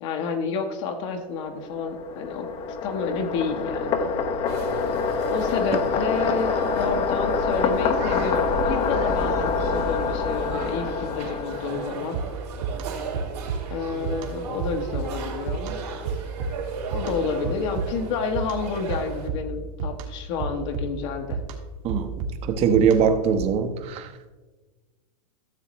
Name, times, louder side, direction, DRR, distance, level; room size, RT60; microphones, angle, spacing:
voice 1, 0.0-2.5 2.8-4.1 5.3-12.2 13.7-15.8 16.9-21.4, left 5 dB, 50° left, 3 dB, 1.2 m, -29 dB
sound 1, 1.5-12.2, left 5 dB, 30° left, 0.8 m, -26 dB
sound 2, 4.5-19.3, right 6 dB, 80° right, 3.4 m, -36 dB
sound 3, 12.1-23.3, right 4 dB, 55° right, 1.7 m, -33 dB
voice 2, 22.4-24.1, right 7 dB, 30° right, 8 dB, 1.0 m, -21 dB
14.0 x 7.3 x 3.1 m, 1.3 s
hypercardioid pair, 140°, 20 cm